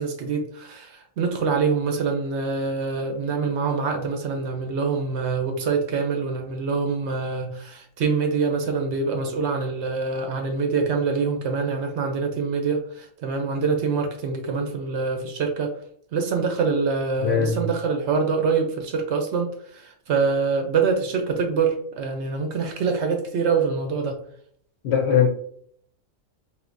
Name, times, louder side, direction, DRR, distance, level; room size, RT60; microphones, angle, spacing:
voice 1, 0.0-15.7 16.1-24.2, right 5 dB, 65° right, 0.8 m, -25 dB
voice 2, 17.2-17.6 24.8-25.3, left 7 dB, 65° left, 0.7 m, -20 dB
3.5 x 2.7 x 2.5 m
omnidirectional pair, 1.4 m